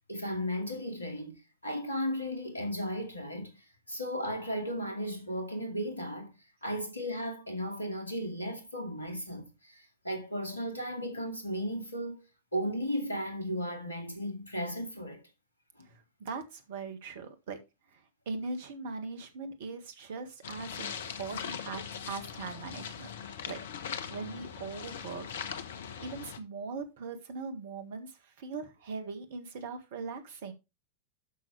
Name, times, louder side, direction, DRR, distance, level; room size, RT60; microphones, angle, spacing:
voice 1, 0.1-3.6 3.9-12.2 12.5-15.2 15.8-15.9, equal, 85° left, 2.3 m, -35 dB
voice 2, 16.2-17.6 17.9-23.6 24.1-25.3 25.8-30.5, right 4 dB, 55° right, 1.8 m, -40 dB
sound 1, 20.4-26.4, left 7 dB, 60° left, 1.0 m, -40 dB
12.0 x 6.1 x 3.3 m
figure-of-eight pair, 90°, 0 cm